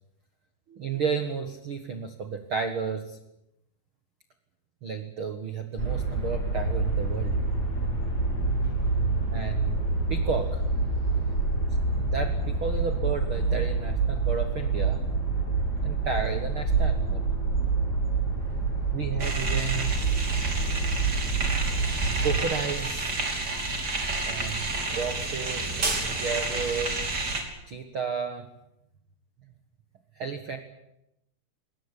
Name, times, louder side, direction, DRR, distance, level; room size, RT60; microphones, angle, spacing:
voice 1, 0.7-3.2 4.8-7.4 9.3-9.8 10.1-10.6 11.7-15.0 15.8-17.3 18.9-19.9 22.2-23.5 24.2-25.8 26.1-27.0 27.7-28.5 30.2-30.6, right 6 dB, 85° right, 8 dB, 1.1 m, -32 dB
sound 1, 5.8-22.4, right 3 dB, 20° left, 7.9 m, -27 dB
sound 2, 19.2-27.4, right 2 dB, 25° right, 3.6 m, -30 dB
22.0 x 19.5 x 10.0 m, 0.84 s
omnidirectional pair, 5.0 m